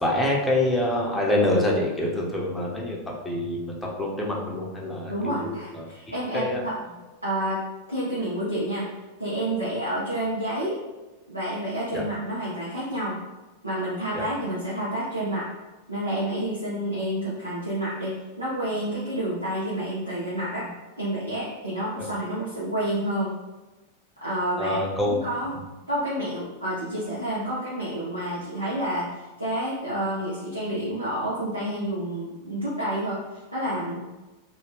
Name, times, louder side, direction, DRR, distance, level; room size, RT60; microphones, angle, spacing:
voice 1, 0.0-3.0 3.2-5.9 6.3-6.6 11.9-12.0 14.1-14.2 22.0-22.1 24.6-25.2 25.5-25.6, left 1 dB, 10° left, -2 dB, 0.6 m, -26 dB
voice 2, 5.1-6.8 7.2-7.6 7.9-8.9 9.2-10.8 11.3-13.2 13.6-15.5 15.9-18.1 18.4-23.3 24.2-24.8 25.1-25.5 25.9-34.0, right 1 dB, 85° right, -8 dB, 0.6 m, -29 dB
2.6 x 2.2 x 3.4 m, 1.1 s
figure-of-eight pair, 90°, 0 cm